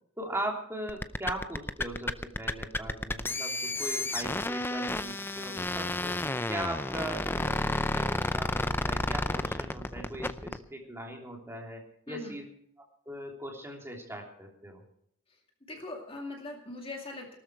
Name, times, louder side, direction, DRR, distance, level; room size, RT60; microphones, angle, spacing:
voice 1, 0.2-6.2 6.5-12.4 13.0-14.8, right 1 dB, 10° right, 0 dB, 3.1 m, -39 dB
sound 1, 0.9-10.6, left 2 dB, 10° left, 0.5 m, -31 dB
voice 2, 15.7-17.3, left 2 dB, 25° left, 1 dB, 2.4 m, -41 dB
18.5 x 13.0 x 4.6 m, 0.67 s
head